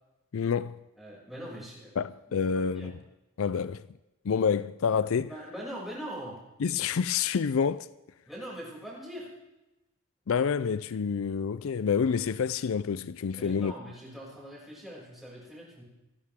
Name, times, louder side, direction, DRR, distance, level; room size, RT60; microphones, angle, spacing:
voice 1, 0.3-0.8 2.0-2.9 3.4-3.8 4.2-5.3 6.6-7.9 10.3-13.7, left 6 dB, 75° left, 0.4 m, -28 dB
voice 2, 1.0-2.1 2.5-2.9 5.2-6.4 8.3-9.3 13.4-15.8, equal, ahead, 6.5 m, -42 dB
28.5 x 11.5 x 3.7 m
head